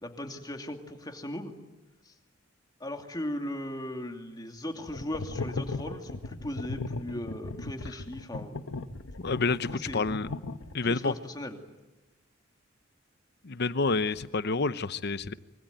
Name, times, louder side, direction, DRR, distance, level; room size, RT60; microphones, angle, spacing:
voice 1, 0.0-1.5 2.0-2.1 2.8-8.6 9.7-10.1 10.8-11.6, left 1 dB, 20° left, 4 dB, 2.6 m, -38 dB
sound 1, 4.9-11.0, left 3 dB, 90° left, 1.1 m, -37 dB
voice 2, 9.2-10.3 10.7-11.1 13.4-15.3, left 3 dB, 55° left, 14 dB, 0.8 m, -28 dB
25.5 x 24.0 x 9.3 m, 1.0 s
head